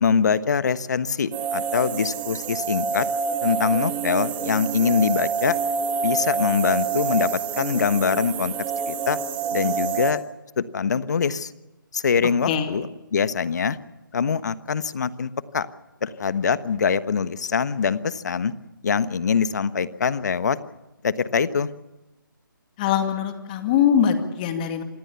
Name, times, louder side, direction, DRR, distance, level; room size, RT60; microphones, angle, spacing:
voice 1, 0.0-3.1 3.4-5.6 6.0-7.3 7.6-8.5 8.9-9.2 9.5-10.2 10.6-11.5 11.9-12.8 13.1-13.8 14.1-15.7 16.0-18.5 18.8-20.6 21.0-21.7, left 6 dB, 55° left, 14 dB, 1.3 m, -23 dB
sound 1, 1.3-10.1, right 6 dB, 10° right, 1.6 m, -27 dB
voice 2, 22.8-24.8, left 8 dB, 25° left, 7 dB, 2.2 m, -22 dB
26.5 x 19.5 x 7.1 m, 1.0 s
figure-of-eight pair, 155°, 11 cm